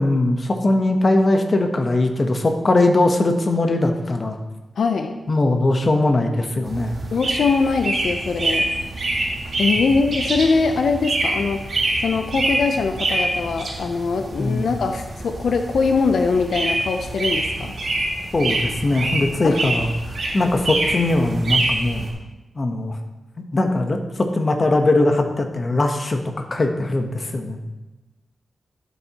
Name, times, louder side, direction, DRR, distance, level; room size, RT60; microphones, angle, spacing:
voice 1, 0.0-4.4 5.3-7.0 14.4-14.7 18.3-19.9 20.3-22.1 22.6-23.0 23.5-27.6, left 2 dB, 40° left, 5 dB, 0.9 m, -20 dB
voice 2, 4.8-5.2 7.1-8.7 9.6-17.7 19.4-19.6, left 4 dB, 80° left, 6 dB, 0.5 m, -22 dB
sound 1, 6.6-22.1, right 2 dB, 65° right, 2.2 m, -26 dB
12.0 x 7.3 x 2.9 m, 1.1 s
wide cardioid pair, 115°, 0 cm